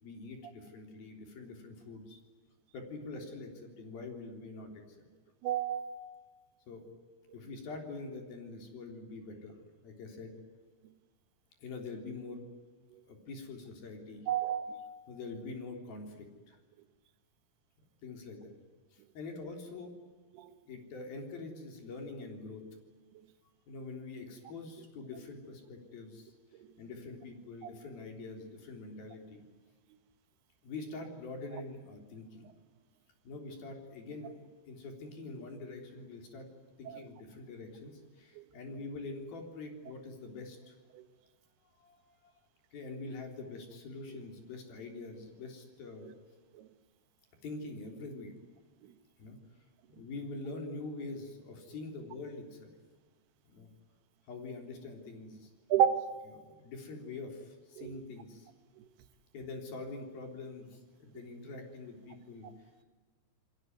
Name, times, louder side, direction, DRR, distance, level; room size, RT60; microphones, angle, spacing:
voice 1, 0.0-2.2 2.7-4.8 6.7-6.9 7.3-10.4 11.6-12.4 13.1-14.3 15.1-16.6 18.0-18.5 18.9-19.9 20.7-22.7 23.7-26.3 26.8-29.4 30.6-32.5 33.3-36.5 36.8-40.7 41.8-42.3 42.7-46.1 47.4-48.3 49.2-49.4 49.9-52.7 53.5-53.7 54.3-55.5 56.5-58.5 59.3-62.5, left 3 dB, 70° left, 5.4 m, -45 dB
voice 2, 5.4-6.2 14.3-15.0 20.3-20.5 26.6-26.7 36.9-37.0 38.4-38.5 40.9-41.0 46.5-46.7 55.7-56.3 57.8-57.9, right 9 dB, 90° right, 3.4 m, -31 dB
29.0 x 21.0 x 9.4 m
omnidirectional pair, 4.4 m